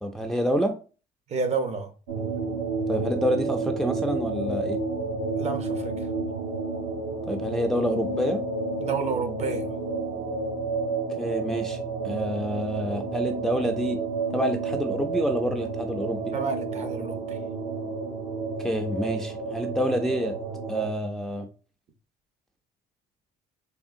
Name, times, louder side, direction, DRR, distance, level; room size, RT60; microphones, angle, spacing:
voice 1, 0.0-0.8 2.9-4.8 7.3-8.4 11.2-11.8 12.0-14.0 14.3-16.2 18.6-20.4 20.7-21.5, equal, ahead, 0.4 m, -27 dB
voice 2, 1.3-1.9 5.4-6.1 8.8-9.7 16.3-17.4, right 4 dB, 40° right, 0.7 m, -30 dB
sound 1, 2.1-20.9, right 3 dB, 75° right, 0.9 m, -31 dB
3.6 x 3.6 x 2.5 m
cardioid pair, 110°, 17 cm